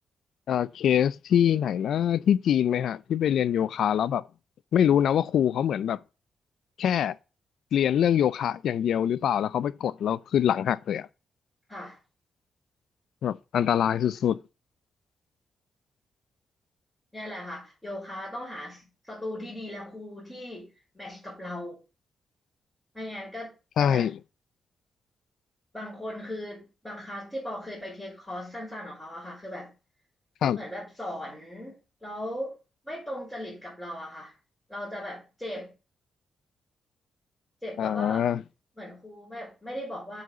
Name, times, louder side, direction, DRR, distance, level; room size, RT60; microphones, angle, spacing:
voice 1, 0.5-4.2 4.7-6.0 6.8-7.1 7.7-11.1 13.2-14.4 23.8-24.2 30.4-30.6 37.8-38.4, left 9 dB, 75° left, 0.4 m, -24 dB
voice 2, 17.1-21.8 22.9-23.5 23.8-24.1 25.7-29.7 30.5-31.7 32.0-32.5 32.8-34.3 34.7-35.7 37.6-38.3 38.8-40.2, left 1 dB, 10° left, 4.4 m, -38 dB
7.6 x 4.1 x 6.7 m
wide cardioid pair, 170°, 0 cm